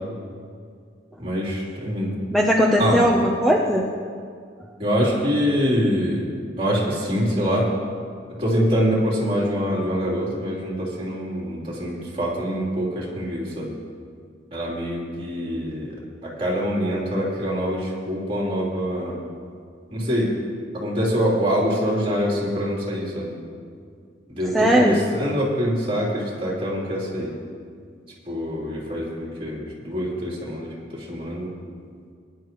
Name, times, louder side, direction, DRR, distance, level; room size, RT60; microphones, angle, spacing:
voice 1, 1.2-2.1 2.8-3.0 4.8-6.2 6.6-7.7 8.4-13.7 14.5-15.9 16.2-19.2 19.9-20.4 20.7-23.4 24.3-27.4 28.3-31.5, equal, 30° right, -5 dB, 3.5 m, -24 dB
voice 2, 2.3-3.9 24.5-25.0, equal, ahead, -2 dB, 0.8 m, -18 dB
22.0 x 11.0 x 3.1 m, 2.2 s
head